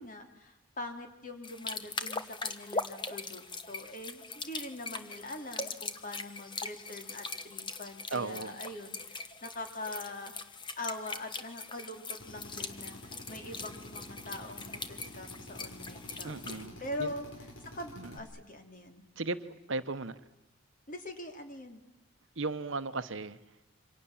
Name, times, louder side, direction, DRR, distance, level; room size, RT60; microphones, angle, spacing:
voice 1, 0.0-10.3 10.8-19.0 20.9-21.8, left 1 dB, 40° left, 6 dB, 3.1 m, -43 dB
sound 1, 1.4-16.7, left 3 dB, 20° left, 1.2 m, -41 dB
voice 2, 8.1-8.6 16.2-16.7 17.0-17.1 18.0-18.1 19.2-19.4 19.7-20.2 22.4-23.4, right 3 dB, 60° right, 11 dB, 1.1 m, -35 dB
Drill, 12.2-18.2, left 1 dB, 65° left, 5.2 m, -49 dB
28.0 x 25.5 x 7.3 m, 0.87 s
head